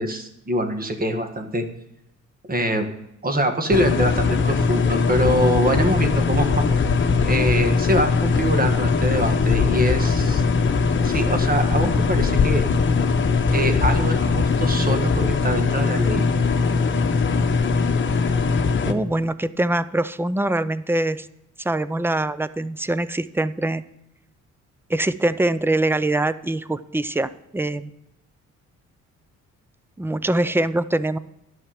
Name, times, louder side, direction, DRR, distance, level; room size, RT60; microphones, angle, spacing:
voice 1, 0.0-1.6 2.5-2.9 3.2-6.9 7.2-10.4 11.0-12.7 13.5-16.2, equal, 30° right, 6 dB, 1.7 m, -24 dB
sound 1, 3.7-18.9, left 4 dB, 40° left, 1.1 m, -20 dB
voice 2, 18.9-21.3 21.6-23.8 24.9-27.9 30.0-31.2, right 1 dB, 10° right, 15 dB, 0.5 m, -23 dB
11.0 x 5.9 x 7.5 m, 0.83 s
cardioid pair, 90°, 30 cm